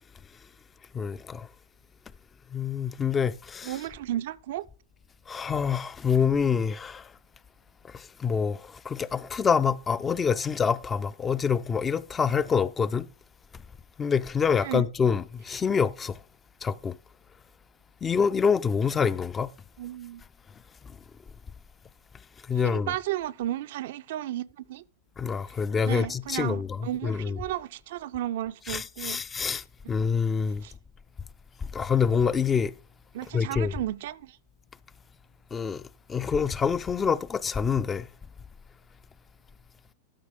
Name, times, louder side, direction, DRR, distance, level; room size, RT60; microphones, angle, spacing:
voice 1, 0.9-1.5 2.5-3.8 5.3-7.0 8.2-8.6 8.9-13.1 14.0-16.2 16.6-16.9 18.0-19.5 22.5-22.9 25.2-27.4 28.7-29.6 29.9-30.6 31.7-32.7 33.3-33.7 35.5-35.8 36.1-38.1, left 6 dB, 20° left, 0.3 m, -26 dB
voice 2, 3.6-4.7 14.6-14.9 19.8-20.2 22.6-24.8 25.9-29.2 30.6-30.7 33.1-34.4, right 13 dB, 55° right, 0.4 m, -33 dB
12.5 x 4.7 x 5.3 m
figure-of-eight pair, 90°, 0 cm